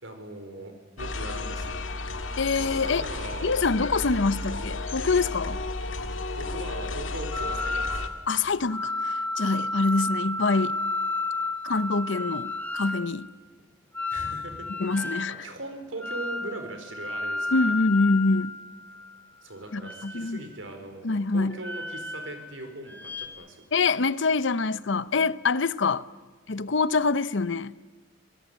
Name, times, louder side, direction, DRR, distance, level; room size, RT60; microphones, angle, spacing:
voice 1, 0.0-1.8 2.8-3.6 6.3-8.2 14.1-17.6 18.9-19.0 19.4-23.6, right 2 dB, 90° right, 4.8 m, -40 dB
sound 1, 1.0-8.1, left 2 dB, 90° left, 2.0 m, -33 dB
voice 2, 2.4-3.0 3.4-5.6 8.3-10.7 11.6-13.3 14.8-15.3 17.5-18.6 19.7-20.4 21.0-21.6 23.7-26.1 26.5-27.7, left 3 dB, 70° left, 0.8 m, -25 dB
sound 2, 7.3-8.3 8.7-13.1 13.9-15.4 16.0-16.6 16.9-19.1 19.8-20.6 21.5-22.5 22.9-23.3, left 2 dB, 10° left, 2.3 m, -32 dB
26.0 x 18.5 x 9.3 m
head